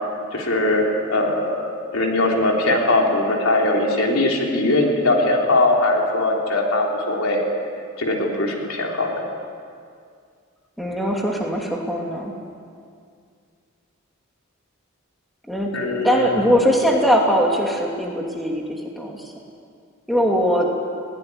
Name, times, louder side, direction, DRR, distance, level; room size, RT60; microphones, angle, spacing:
voice 1, 0.3-7.4 8.0-9.2 15.7-16.4, left 2 dB, 85° left, 0 dB, 3.8 m, -20 dB
voice 2, 10.8-12.3 15.5-15.8 16.0-19.3 20.1-20.7, equal, ahead, -1 dB, 2.7 m, -21 dB
20.5 x 18.5 x 9.9 m, 2.2 s
head